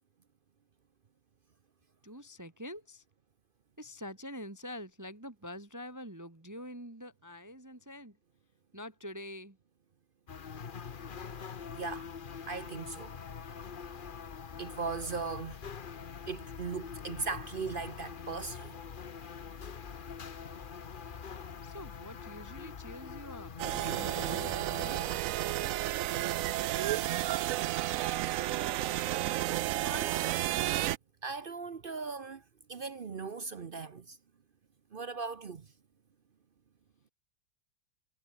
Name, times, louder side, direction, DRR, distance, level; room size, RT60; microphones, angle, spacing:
voice 1, 2.0-3.0 3.8-8.2 8.7-9.6 21.6-23.5 23.9-25.1, equal, 10° right, 1.3 m, -45 dB
sound 1, 10.3-25.2, left 6 dB, 40° left, 0.8 m, -44 dB
voice 2, 11.8-12.1 12.5-13.1 14.6-15.6 16.3-18.8 29.8-30.6 31.2-32.4 32.7-34.2 34.9-35.7, right 4 dB, 50° right, 0.6 m, -38 dB
sound 2, 23.6-31.0, right 14 dB, 85° right, 0.7 m, -32 dB
omnidirectional pair, 2.0 m